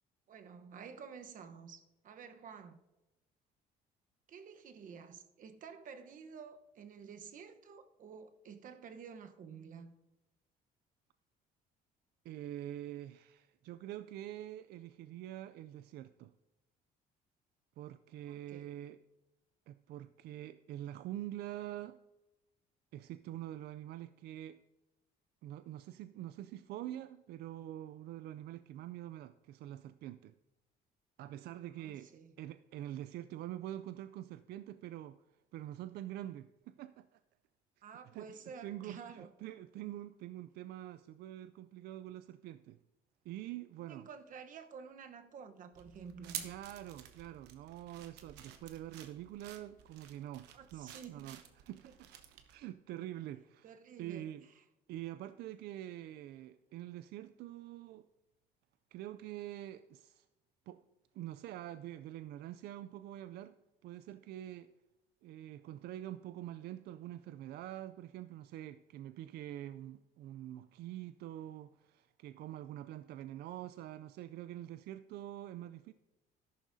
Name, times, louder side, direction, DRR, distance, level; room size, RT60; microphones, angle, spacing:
voice 1, 0.3-2.8 4.3-9.9 18.2-18.7 31.7-32.3 37.8-39.3 43.9-46.4 50.5-51.4 51.8-51.9 53.6-54.3 54.5-54.6, right 6 dB, 50° right, 1.0 m, -51 dB
voice 2, 12.2-16.3 17.8-19.0 19.7-22.0 22.9-24.6 25.4-30.3 31.2-32.1 32.4-35.2 35.5-37.2 38.1-38.4 38.6-42.8 43.3-44.1 46.4-51.4 51.7-52.1 52.5-53.7 54.0-54.5 54.9-58.1 58.9-60.3 60.7-60.8 61.1-63.5 63.8-64.7 65.2-75.9, right 13 dB, 70° right, 0.4 m, -45 dB
sound 1, 45.7-52.6, right 10 dB, 90° right, 1.0 m, -51 dB
13.0 x 11.0 x 2.7 m
cardioid pair, 110°, 17 cm